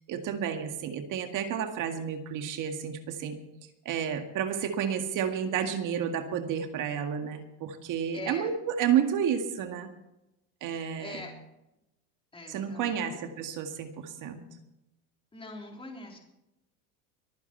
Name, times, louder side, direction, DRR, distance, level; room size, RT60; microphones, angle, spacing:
voice 1, 0.0-3.4 3.9-9.9 10.6-11.2 12.5-14.4, right 8 dB, 45° right, 6 dB, 2.0 m, -31 dB
voice 2, 8.1-8.5 10.7-11.3 12.3-12.9 15.3-16.3, left 3 dB, 10° left, 1 dB, 3.6 m, -43 dB
23.5 x 9.8 x 4.5 m, 0.90 s
supercardioid pair, 120°, 42 cm